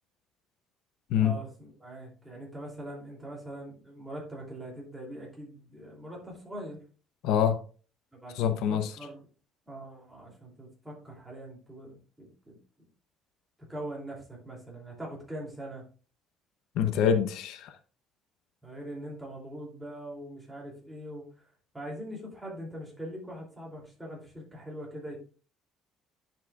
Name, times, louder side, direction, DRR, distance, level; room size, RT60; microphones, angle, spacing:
voice 1, 1.2-6.8 8.1-9.3 9.7-12.6 13.7-15.8 18.6-21.5 21.7-25.2, right 1 dB, 5° right, 2.8 m, -42 dB
voice 2, 7.2-7.6 8.4-8.9 16.8-17.7, left 8 dB, 70° left, 0.7 m, -25 dB
10.0 x 7.4 x 2.4 m
cardioid pair, 170°, 0 cm